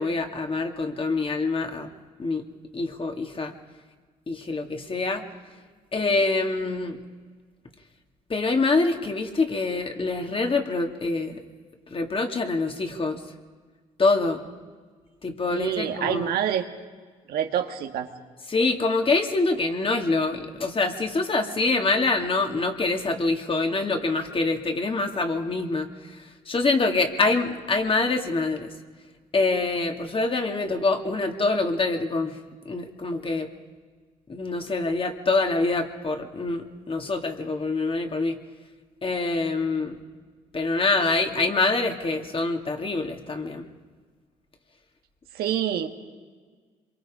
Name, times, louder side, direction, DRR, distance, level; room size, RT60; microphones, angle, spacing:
voice 1, 0.0-1.9 2.2-2.4 2.7-3.5 4.3-5.2 5.9-7.0 8.3-11.4 11.9-13.2 14.0-14.4 15.2-16.3 18.5-25.9 26.5-28.7 29.3-32.4 32.7-33.5 34.3-38.4 39.0-40.0 40.5-43.7, left 3 dB, 35° left, 4 dB, 2.5 m, -25 dB
voice 2, 15.5-16.6 17.3-18.1 45.4-45.9, right 10 dB, 75° right, 6 dB, 1.7 m, -26 dB
26.5 x 23.5 x 5.0 m, 1.5 s
supercardioid pair, 65°, 16 cm